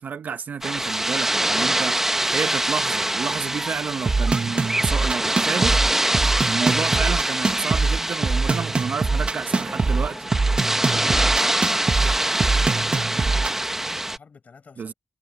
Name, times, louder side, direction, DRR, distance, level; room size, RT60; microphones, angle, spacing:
voice 1, 0.0-5.8 6.4-10.3 14.8-14.9, right 6 dB, 70° right, 1.2 m, -30 dB
sound 1, 0.6-14.2, right 1 dB, 10° right, 1.3 m, -24 dB
voice 2, 2.1-2.4 8.4-14.9, left 5 dB, 55° left, 6.5 m, -49 dB
sound 2, 4.1-13.6, right 3 dB, 35° right, 1.8 m, -23 dB
wide cardioid pair, 100°, 3 cm